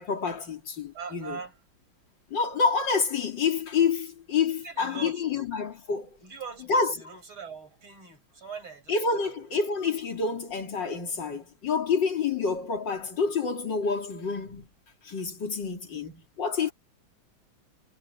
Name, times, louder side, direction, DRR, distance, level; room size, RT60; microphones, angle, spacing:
voice 1, 0.0-1.4 2.3-6.2 6.7-6.9 8.9-14.7 15.0-16.7, left 5 dB, 60° left, 3.4 m, -28 dB
voice 2, 0.9-1.5 4.6-5.5 6.2-9.0 16.6-16.7, right 5 dB, 85° right, 7.0 m, -41 dB
omnidirectional pair, 2.2 m